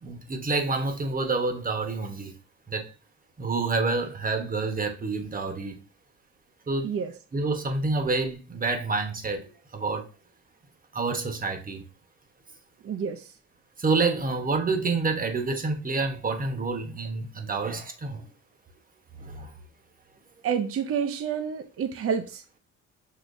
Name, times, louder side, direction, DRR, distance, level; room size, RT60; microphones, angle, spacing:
voice 1, 0.0-2.3 2.7-2.9 3.4-5.8 6.7-6.9 7.3-10.1 10.9-11.8 13.8-18.3 19.2-19.5, right 3 dB, 30° right, 1.1 m, -28 dB
voice 2, 12.8-13.3 20.4-22.6, right 7 dB, 50° right, 0.6 m, -29 dB
6.5 x 3.1 x 2.6 m
cardioid pair, 90°, 30 cm